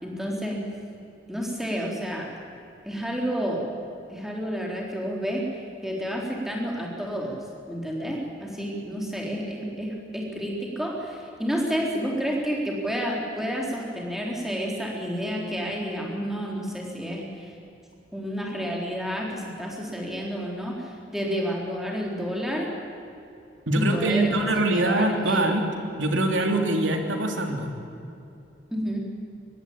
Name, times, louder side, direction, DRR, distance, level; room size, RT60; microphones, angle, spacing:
voice 1, 0.0-0.6 1.3-2.3 2.9-3.6 4.1-7.3 7.7-17.5 18.1-22.7 23.7-25.4 28.7-29.0, equal, ahead, -1 dB, 3.8 m, -30 dB
voice 2, 23.7-25.7 26.0-27.7, right 1 dB, 90° right, 4 dB, 3.0 m, -23 dB
24.5 x 21.0 x 8.7 m, 2.6 s
head